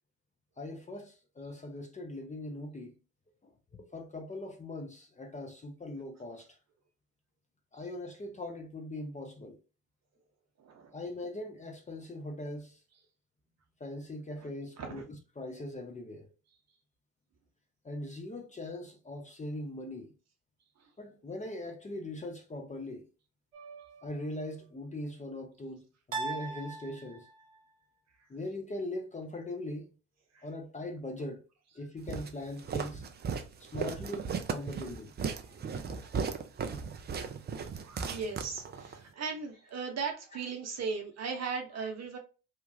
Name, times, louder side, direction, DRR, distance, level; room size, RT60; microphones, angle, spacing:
voice 1, 0.6-2.9 3.8-6.5 7.7-9.6 10.9-12.8 13.8-16.3 17.8-20.1 21.0-23.1 24.0-27.3 28.3-29.9 30.4-31.4 31.8-33.0 33.6-35.1 35.9-36.1 41.8-41.9, left 1 dB, 20° left, 0.7 m, -41 dB
voice 2, 10.6-10.9 14.4-14.5 14.8-15.1 30.3-30.4 35.4-35.6 36.0-36.2 37.6-42.2, right 5 dB, 40° right, 0.8 m, -38 dB
sound 1, 23.5-24.2 26.1-27.6, right 3 dB, 85° right, 0.7 m, -40 dB
Walk footsteps, 32.1-39.0, right 6 dB, 25° right, 0.4 m, -36 dB
2.8 x 2.3 x 2.6 m
figure-of-eight pair, 45°, 39 cm